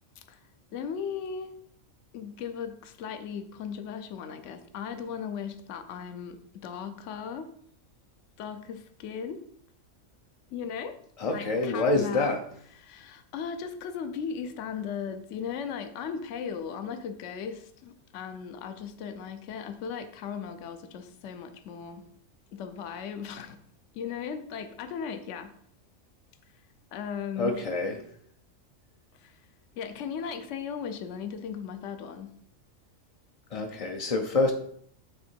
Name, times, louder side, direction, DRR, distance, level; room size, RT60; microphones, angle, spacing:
voice 1, 0.7-1.5 2.1-7.5 8.4-9.4 10.5-11.0 11.3-12.4 12.7-22.1 22.5-23.6 23.9-25.6 26.9-27.6 29.1-29.4 29.8-32.3, left 7 dB, 70° left, 1.0 m, -37 dB
voice 2, 11.2-12.4 27.4-28.0 33.5-34.5, left 2 dB, 50° left, 0.4 m, -26 dB
8.1 x 3.7 x 4.4 m
omnidirectional pair, 1.3 m